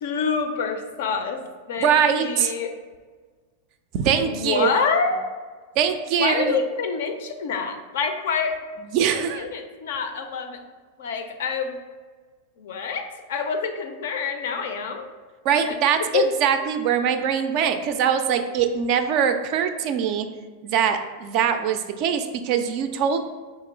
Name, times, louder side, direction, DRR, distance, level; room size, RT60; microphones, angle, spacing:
voice 1, 0.0-1.4 1.7-1.9 2.1-2.7 4.2-5.1 6.2-8.5 9.1-10.6 11.0-11.7 12.6-15.1 15.7-15.8 16.1-16.3, left 5 dB, 55° left, 6 dB, 0.4 m, -26 dB
voice 2, 1.8-2.5 3.9-4.7 5.8-6.6 8.9-9.5 15.4-20.3 20.6-23.2, right 8 dB, 45° right, 8 dB, 0.3 m, -22 dB
4.0 x 2.9 x 3.6 m, 1.5 s
figure-of-eight pair, 90°, 0 cm